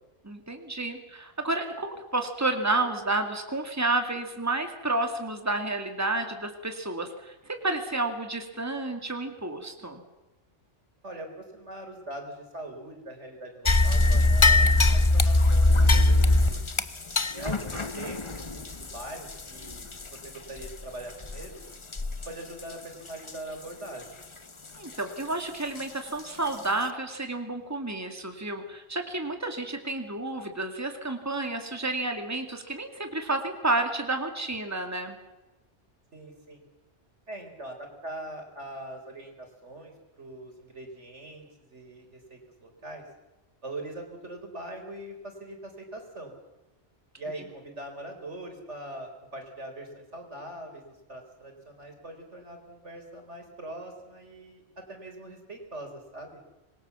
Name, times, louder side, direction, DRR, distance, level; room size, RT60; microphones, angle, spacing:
voice 1, 0.2-10.0 24.7-35.2, right 2 dB, 15° right, 5 dB, 2.4 m, -30 dB
voice 2, 11.0-16.6 17.3-21.6 22.3-24.2 36.1-36.6 37.3-43.0 43.6-46.3 47.2-50.8 51.1-56.4, right 1 dB, 80° right, 4 dB, 4.7 m, -42 dB
sound 1, 13.7-20.2 20.6-20.7 21.2-21.5 21.9-22.3 22.6-22.7 23.3-23.4 25.8-25.9 26.5-26.6, left 2 dB, 25° left, 1.0 m, -22 dB
26.0 x 22.0 x 7.2 m, 1.1 s
omnidirectional pair, 1.2 m